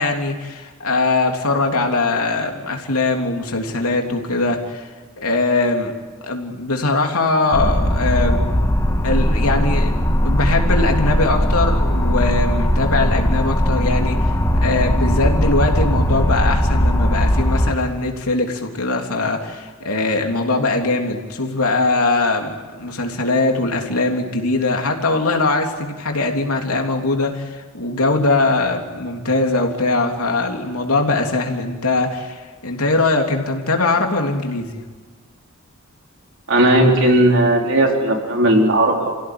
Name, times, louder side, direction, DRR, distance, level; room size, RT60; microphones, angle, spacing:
voice 1, 0.0-4.9 5.2-6.0 6.2-8.4 9.0-14.3 14.6-34.8, left 3 dB, 90° left, 2 dB, 3.4 m, -21 dB
sound 1, 7.5-17.7, equal, 15° left, 1.9 m, -18 dB
voice 2, 36.5-39.1, right 1 dB, 60° right, 0 dB, 4.4 m, -15 dB
28.0 x 16.5 x 9.9 m, 1.4 s
head